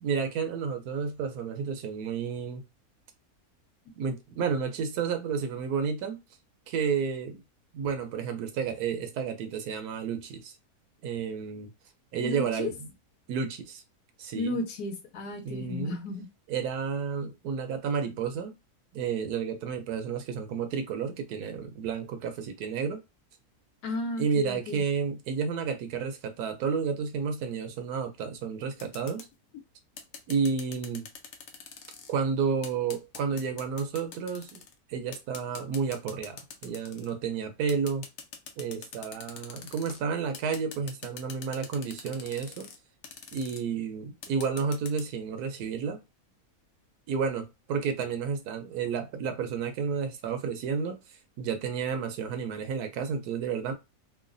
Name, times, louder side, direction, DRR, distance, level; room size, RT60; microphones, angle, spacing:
voice 1, 0.0-2.6 4.0-6.2 6.7-7.4 7.7-10.5 11.0-11.7 12.1-12.9 13.3-13.8 14.2-14.6 15.4-16.0 16.5-18.5 18.9-23.0 24.2-29.3 30.3-31.1 32.1-34.6 34.9-38.1 38.6-42.7 43.3-46.0 47.1-51.0 51.4-53.7, right 6 dB, 85° right, 1.1 m, -31 dB
voice 2, 12.2-12.7 14.4-16.3 23.8-24.8, left 2 dB, 90° left, 1.2 m, -33 dB
sound 1, 28.8-29.3 30.0-32.1 32.6-34.7 35.1-37.1 37.7-40.0 40.3-42.8 43.0-43.6 44.2-45.0, left 6 dB, 70° left, 0.9 m, -44 dB
3.1 x 2.2 x 2.5 m
omnidirectional pair, 1.6 m